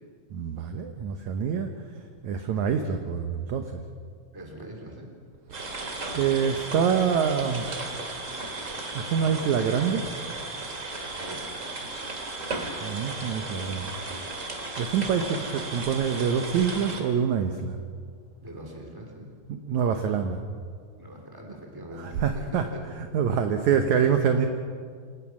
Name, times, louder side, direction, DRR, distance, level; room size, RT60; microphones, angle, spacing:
voice 1, 0.3-1.7 2.2-3.8 5.5-5.9 6.2-7.8 8.9-10.0 12.8-13.9 14.8-17.8 19.5-20.4 22.0-22.7 23.0-24.5, right 7 dB, 70° right, 6 dB, 1.9 m, -26 dB
voice 2, 4.3-5.1 11.2-11.4 18.4-19.3 21.0-22.8, right 1 dB, 5° right, 1 dB, 2.8 m, -42 dB
sound 1, 5.5-17.0, right 2 dB, 25° right, 1.9 m, -35 dB
27.0 x 18.5 x 6.2 m, 2.1 s
omnidirectional pair, 4.3 m